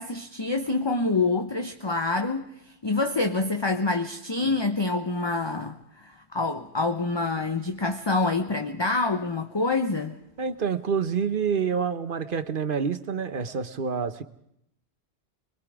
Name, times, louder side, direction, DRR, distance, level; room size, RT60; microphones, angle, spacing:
voice 1, 0.0-2.5 2.8-10.2, left 3 dB, 25° left, 6 dB, 0.9 m, -26 dB
voice 2, 10.4-14.2, right 6 dB, 55° right, 12 dB, 1.1 m, -27 dB
26.0 x 22.0 x 4.9 m, 0.76 s
omnidirectional pair, 1.1 m